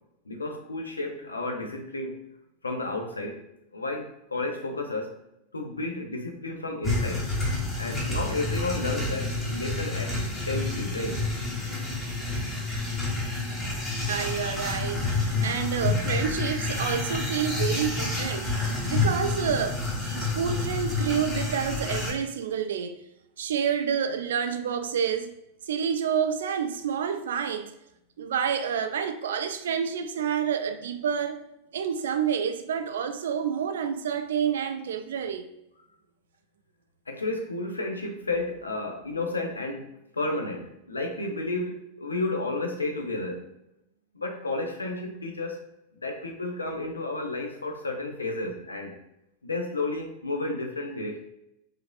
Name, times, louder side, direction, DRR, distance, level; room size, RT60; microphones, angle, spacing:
voice 1, 0.3-2.3 2.6-3.4 3.7-5.1 5.5-7.3 7.8-10.2 10.5-11.2 11.8-12.0 37.1-39.9 40.1-43.5 44.1-45.6 46.0-49.0 49.4-51.2, left 2 dB, 75° left, 0.5 m, -32 dB
sound 1, 6.8-22.1, left 3 dB, 15° left, 1.1 m, -29 dB
voice 2, 14.1-18.5 18.9-23.0 23.4-25.3 25.7-27.7 28.2-31.4 31.7-35.5, right 7 dB, 60° right, 0.3 m, -28 dB
4.6 x 2.5 x 2.3 m
figure-of-eight pair, 90°, 0 cm